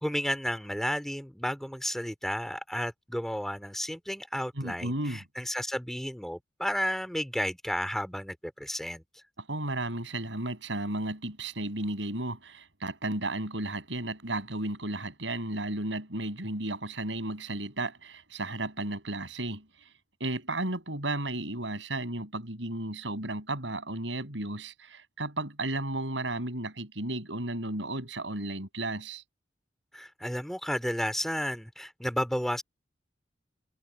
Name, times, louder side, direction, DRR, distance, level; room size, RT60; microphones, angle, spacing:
voice 1, 0.0-9.0 29.9-32.6, equal, ahead, 2.6 m, -32 dB
voice 2, 4.6-5.2 9.4-19.9 20.2-29.2, right 2 dB, 80° right, 6.7 m, -34 dB
head